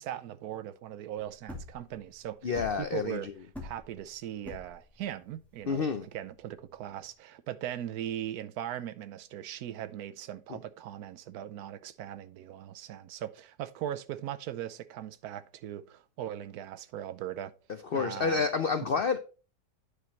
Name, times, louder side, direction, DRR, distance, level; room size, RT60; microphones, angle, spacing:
voice 1, 0.0-3.3 3.6-17.5 17.9-18.5, right 11 dB, 70° right, 1.1 m, -39 dB
sound 1, 1.2-7.1, left 2 dB, ahead, 2.2 m, -46 dB
voice 2, 2.4-3.3 5.7-6.0 17.9-19.2, left 5 dB, 90° left, 0.5 m, -29 dB
10.0 x 5.1 x 4.2 m
omnidirectional pair, 1.8 m